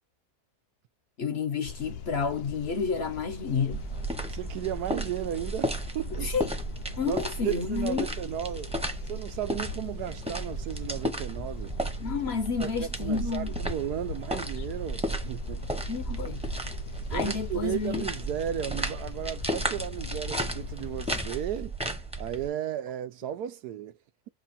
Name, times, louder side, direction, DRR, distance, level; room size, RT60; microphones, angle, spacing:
voice 1, 1.2-3.8 6.2-6.4 7.0-8.1 12.0-13.6 15.9-16.4 17.1-18.1, left 5 dB, 50° left, 0.8 m, -30 dB
sound 1, 1.6-21.2, left 6 dB, 75° left, 1.3 m, -41 dB
sound 2, 3.7-22.5, right 2 dB, 5° right, 0.6 m, -34 dB
voice 2, 4.3-6.5 7.0-8.7 9.1-11.8 12.6-16.0 17.1-21.7 22.2-23.9, right 11 dB, 85° right, 1.3 m, -35 dB
5.2 x 2.3 x 4.2 m
omnidirectional pair, 1.7 m